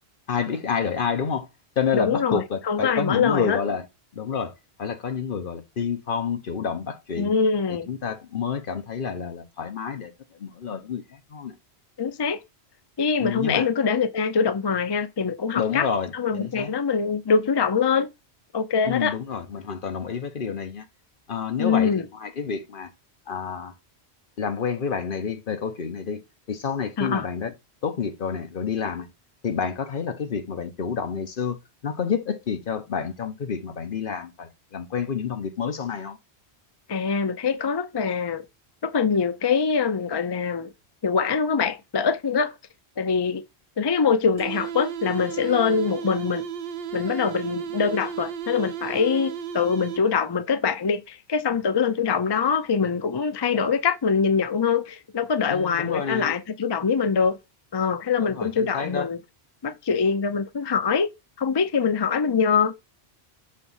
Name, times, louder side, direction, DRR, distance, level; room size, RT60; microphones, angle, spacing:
voice 1, 0.3-1.5 1.8-3.8 4.1-4.5 4.8-7.3 7.7-10.1 10.4-11.6 13.2-13.7 15.5-16.7 18.8-20.8 21.3-22.9 23.3-23.7 24.4-26.2 26.5-27.5 27.8-29.1 29.4-31.6 31.8-36.2 55.5-56.4 58.2-59.1, left 6 dB, 55° left, 1.0 m, -29 dB
voice 2, 1.9-3.6 7.2-7.9 12.0-12.4 13.0-15.9 16.1-18.1 18.5-19.2 21.6-22.1 27.0-27.3 36.9-38.4 38.8-40.7 41.0-42.5 43.0-43.4 43.8-46.4 46.9-57.4 57.7-59.2 59.6-61.1 61.4-62.8, left 5 dB, 40° left, 0.4 m, -23 dB
sound 1, 44.4-50.3, right 8 dB, 65° right, 0.8 m, -34 dB
6.5 x 3.0 x 5.4 m
omnidirectional pair, 1.1 m